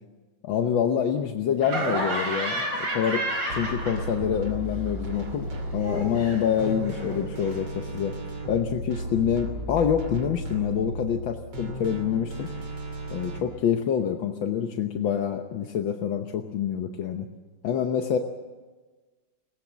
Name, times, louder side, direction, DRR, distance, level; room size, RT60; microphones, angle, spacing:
voice 1, 0.4-2.7 2.9-3.2 3.5-8.1 8.5-12.5 13.1-17.3 17.6-18.2, left 8 dB, 75° left, 5 dB, 1.8 m, -26 dB
Laughter, 1.6-4.4 4.7-7.6, right 1 dB, 65° right, 5.1 m, -32 dB
sound 1, 3.5-13.4, right 1 dB, 90° right, 3.6 m, -35 dB
23.5 x 19.0 x 7.4 m, 1.3 s
omnidirectional pair, 2.2 m